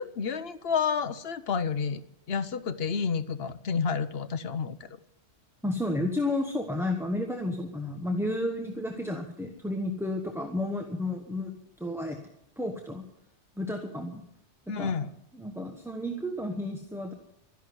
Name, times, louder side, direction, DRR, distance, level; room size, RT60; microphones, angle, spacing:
voice 1, 0.0-2.0 2.3-5.0 14.7-15.1, left 6 dB, 60° left, 12 dB, 1.0 m, -30 dB
voice 2, 5.6-12.2 12.6-13.0 13.6-14.2 14.7-14.9 15.3-17.1, left 1 dB, ahead, 3 dB, 1.1 m, -32 dB
12.5 x 11.0 x 9.6 m, 0.84 s
omnidirectional pair, 1.2 m